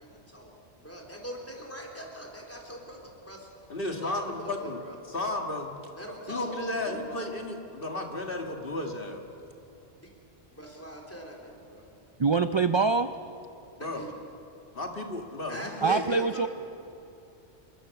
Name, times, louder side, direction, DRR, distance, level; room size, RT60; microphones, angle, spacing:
voice 1, 0.0-3.5 3.9-5.0 5.9-7.2 10.0-10.1 10.5-11.8 13.8-14.1 15.5-16.5, equal, 10° left, 0 dB, 4.0 m, -42 dB
voice 2, 3.7-4.8 5.1-5.8 6.3-9.2 13.8-14.1 14.7-16.3, left 2 dB, 55° left, 2 dB, 2.1 m, -33 dB
voice 3, 12.2-13.1 15.8-16.5, right 4 dB, 35° right, 10 dB, 0.4 m, -24 dB
28.0 x 22.0 x 7.0 m, 2.7 s
omnidirectional pair, 1.2 m